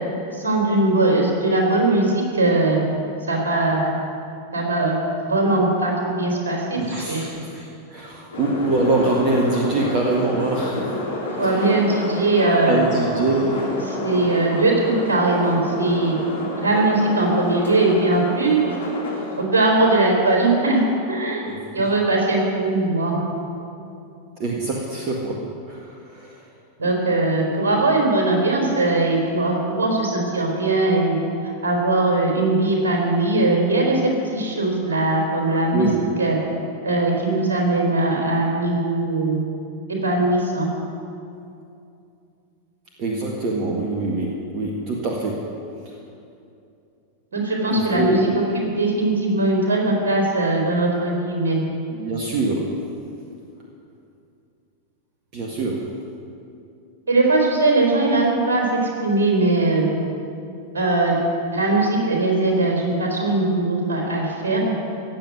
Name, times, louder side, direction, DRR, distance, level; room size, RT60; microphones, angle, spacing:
voice 1, 0.3-2.8 3.3-3.9 4.5-5.0 5.2-6.8 7.1-7.2 11.4-12.8 14.0-16.2 16.6-18.6 19.4-20.8 21.1-21.5 21.7-23.2 26.8-31.2 31.4-35.9 36.2-36.4 36.8-39.4 39.9-40.7 47.3-48.3 48.5-51.6 57.1-58.6 59.0-59.9 60.7-61.2 61.5-64.7, right 2 dB, 70° right, 0 dB, 3.9 m, -20 dB
voice 2, 6.7-11.0 11.4-11.7 12.7-13.8 21.4-21.9 24.4-26.4 35.7-36.0 43.0-45.5 47.7-48.3 51.9-52.7 55.3-55.9, right 2 dB, 40° right, -1 dB, 1.8 m, -24 dB
sound 1, 8.3-19.4, left 2 dB, 70° left, 3.2 m, -29 dB
16.5 x 7.8 x 9.5 m, 2.6 s
figure-of-eight pair, 90°, 0 cm